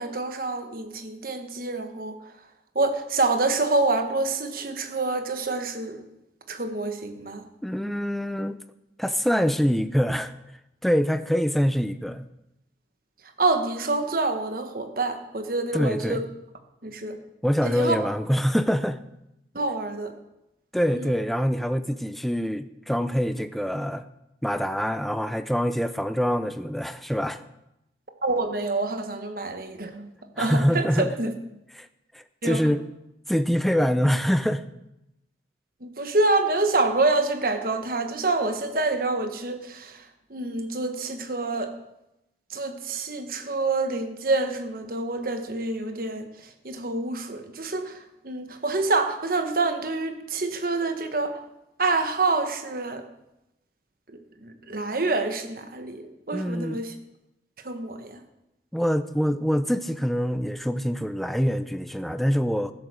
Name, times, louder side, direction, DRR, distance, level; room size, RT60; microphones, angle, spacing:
voice 1, 0.0-2.3 2.7-6.0 6.5-7.4 13.4-16.2 16.8-17.2 17.6-18.0 19.5-20.1 20.9-21.2 28.2-30.1 30.4-31.3 32.4-32.8 35.8-41.7 42.5-51.4 51.8-53.0 54.1-57.0 57.6-58.2, right 3 dB, 50° right, 6 dB, 1.3 m, -27 dB
voice 2, 7.6-8.6 9.0-10.3 10.8-12.3 15.7-16.2 17.4-19.0 20.7-24.0 24.4-27.4 30.4-31.1 31.7-31.9 32.1-32.8 33.3-34.6 56.3-56.8 58.7-62.7, equal, ahead, 10 dB, 0.5 m, -25 dB
15.0 x 8.0 x 6.7 m, 0.89 s
head